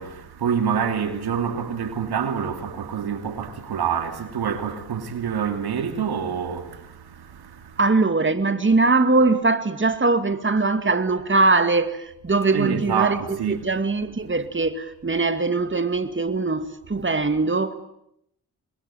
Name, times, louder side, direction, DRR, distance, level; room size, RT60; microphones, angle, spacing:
voice 1, 0.0-7.9 12.5-13.7, right 7 dB, 85° right, 2.7 m, -27 dB
voice 2, 7.8-17.7, right 3 dB, 30° right, 2.3 m, -21 dB
27.0 x 21.5 x 9.1 m
cardioid pair, 45°, 37 cm